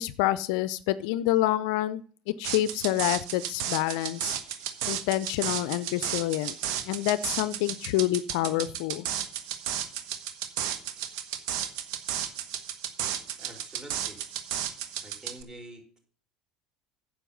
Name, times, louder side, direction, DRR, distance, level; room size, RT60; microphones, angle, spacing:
voice 1, 0.0-2.0 2.4-4.4 4.9-6.5 6.9-9.0, left 15 dB, 65° left, 17 dB, 0.5 m, -27 dB
sound 1, 2.4-15.4, right 10 dB, 65° right, 1.3 m, -33 dB
voice 2, 13.4-14.2 15.0-16.0, right 1 dB, 20° right, 2 dB, 4.5 m, -47 dB
10.0 x 7.6 x 5.2 m, 0.42 s
hypercardioid pair, 70°, 4 cm